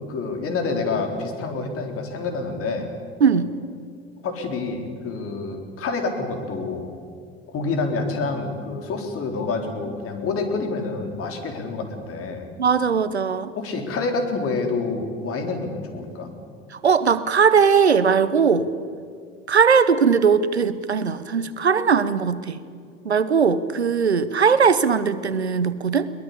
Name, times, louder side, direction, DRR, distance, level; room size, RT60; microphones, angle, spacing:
voice 1, 0.1-2.9 4.2-6.9 7.5-12.5 13.6-16.3, left 3 dB, 45° left, 4 dB, 4.0 m, -27 dB
voice 2, 3.2-3.5 12.6-13.5 16.7-18.7 19.5-22.6 23.0-26.1, right 6 dB, 90° right, 15 dB, 0.9 m, -19 dB
22.0 x 20.0 x 8.5 m, 2.3 s
figure-of-eight pair, 65°, 32 cm